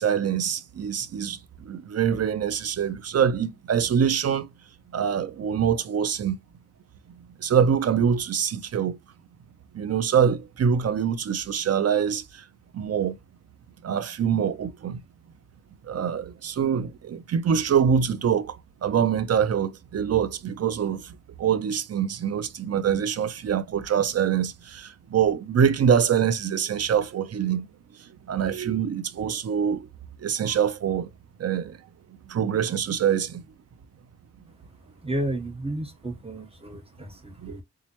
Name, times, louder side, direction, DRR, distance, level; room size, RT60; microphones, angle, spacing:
voice 1, 0.0-4.5 4.9-6.4 7.4-9.0 9.7-12.4 12.7-13.2 13.8-15.0 15.9-18.6 18.8-21.1 21.4-27.7 28.3-29.9 30.2-31.1 31.4-31.8 32.3-33.4 37.4-37.6, right 8 dB, 55° right, 0.7 m, -24 dB
voice 2, 35.0-37.6, right 1 dB, 20° right, 1.6 m, -32 dB
4.2 x 2.5 x 3.0 m
supercardioid pair, 50°, 30 cm